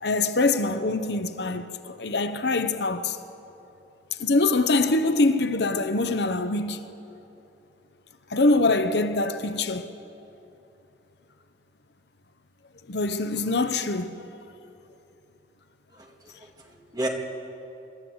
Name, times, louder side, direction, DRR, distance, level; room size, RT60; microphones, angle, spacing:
voice 1, 0.0-3.2 4.2-6.8 8.3-9.9 12.9-14.2, left 2 dB, 60° left, 0.8 m, -24 dB
voice 2, 15.9-17.1, right 1 dB, 20° right, 2.0 m, -34 dB
25.0 x 13.5 x 8.0 m
head